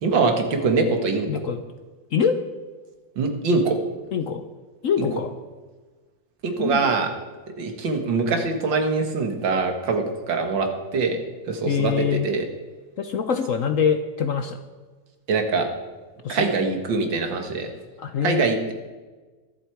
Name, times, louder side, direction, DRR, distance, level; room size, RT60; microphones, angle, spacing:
voice 1, 0.0-1.3 3.2-3.8 5.0-5.1 6.4-7.1 7.6-11.2 11.5-12.5 15.3-15.7 16.3-17.7 18.2-18.7, right 4 dB, 80° right, 5 dB, 2.3 m, -23 dB
voice 2, 1.3-1.6 2.1-2.4 4.1-4.4 4.8-5.3 6.6-6.8 11.7-12.3 13.0-14.6 16.2-16.5 18.0-18.5, left 7 dB, 60° left, 8 dB, 0.9 m, -24 dB
23.5 x 8.1 x 4.6 m, 1.3 s
omnidirectional pair, 2.0 m